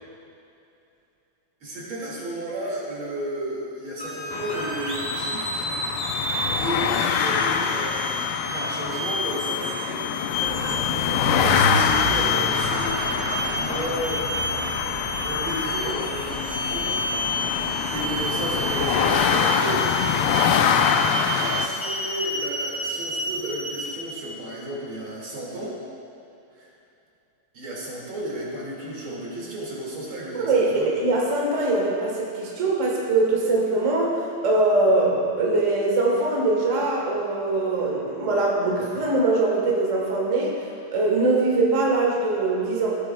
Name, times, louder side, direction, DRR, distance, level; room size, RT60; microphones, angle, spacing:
voice 1, 1.6-6.0 6.6-10.3 11.3-13.3 13.5-14.3 15.2-17.0 17.2-17.4 17.9-19.9 21.3-25.8 26.6-26.7 27.5-30.9, right 1 dB, 70° right, -5 dB, 2.9 m, -33 dB
sound 1, 4.0-23.9, left 2 dB, 30° left, 1.8 m, -30 dB
sound 2, 4.3-21.7, left 7 dB, 80° left, 1.4 m, -25 dB
Engine, 10.3-19.3, left 1 dB, 65° left, 2.4 m, -32 dB
voice 2, 30.3-40.5 40.9-43.0, right 2 dB, 40° right, -3 dB, 1.4 m, -22 dB
15.5 x 9.2 x 2.2 m, 2.7 s
omnidirectional pair, 2.4 m